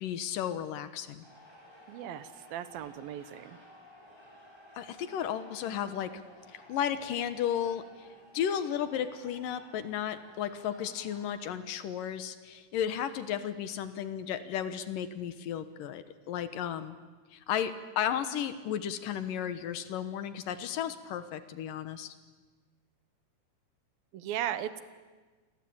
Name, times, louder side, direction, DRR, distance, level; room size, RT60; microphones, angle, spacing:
voice 1, 0.0-1.3 4.8-6.2 6.5-8.1 8.3-17.0 17.3-22.1, left 9 dB, 70° left, 12 dB, 2.7 m, -34 dB
sound 1, 1.2-11.4, equal, 5° left, 7.3 m, -55 dB
voice 2, 1.9-3.6 24.1-24.8, right 11 dB, 80° right, 13 dB, 2.8 m, -37 dB
29.0 x 22.0 x 8.7 m, 1.4 s
omnidirectional pair, 4.2 m